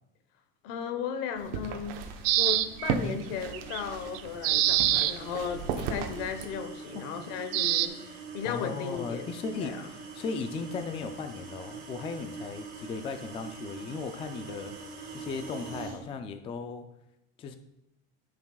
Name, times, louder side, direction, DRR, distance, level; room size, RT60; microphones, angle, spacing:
voice 1, 0.6-2.0 2.4-8.0 8.3-9.3 9.6-9.8, left 7 dB, 80° left, 9 dB, 1.1 m, -35 dB
sound 1, 1.4-6.5, right 6 dB, 70° right, 1.0 m, -36 dB
sound 2, 2.1-16.0, right 4 dB, 35° right, 2.3 m, -44 dB
sound 3, 2.2-2.9 3.5-3.8 4.1-5.1 7.5-7.9, right 13 dB, 55° right, 0.5 m, -25 dB
voice 2, 8.4-14.7 15.1-16.9 17.4-17.6, left 5 dB, 20° left, 7 dB, 0.4 m, -37 dB
13.0 x 6.0 x 2.3 m, 0.89 s
cardioid pair, 165°, 29 cm